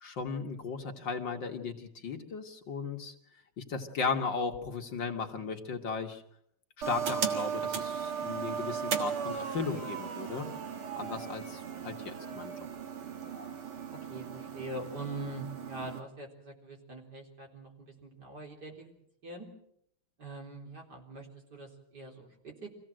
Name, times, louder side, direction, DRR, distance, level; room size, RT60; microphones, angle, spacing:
voice 1, 0.0-3.1 3.6-6.2 6.9-10.5 11.0-12.5, left 5 dB, 55° left, 4 dB, 2.2 m, -36 dB
sound 1, 6.8-16.0, right 7 dB, 75° right, 2.6 m, -36 dB
voice 2, 13.9-18.9 19.2-19.5 20.2-22.7, right 2 dB, 45° right, 0 dB, 4.5 m, -43 dB
25.5 x 16.5 x 7.6 m, 0.72 s
omnidirectional pair, 2.4 m